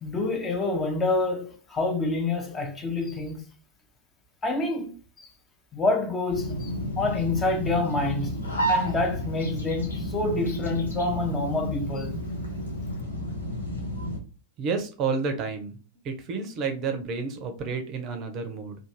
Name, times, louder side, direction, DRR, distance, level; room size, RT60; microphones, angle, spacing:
voice 1, 0.0-3.4 4.4-5.3 5.7-8.3 8.7-12.2, left 3 dB, 20° left, 0.5 m, -27 dB
sound 1, 6.3-14.2, equal, 75° left, 0.6 m, -31 dB
voice 2, 14.6-15.8 16.0-18.8, right 5 dB, 35° right, 0.5 m, -30 dB
2.4 x 2.2 x 2.9 m
figure-of-eight pair, 90°, 0 cm